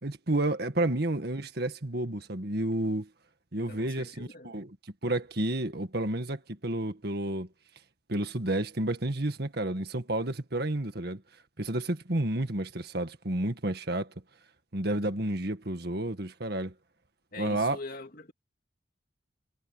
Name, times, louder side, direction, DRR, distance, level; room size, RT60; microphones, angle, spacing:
voice 1, 0.0-3.1 3.5-4.7 5.0-7.5 8.1-11.2 11.6-14.1 14.7-16.7 17.4-17.8, right 1 dB, 55° right, 1.9 m, -30 dB
voice 2, 3.7-4.5 17.3-18.3, left 2 dB, 50° left, 2.7 m, -43 dB
head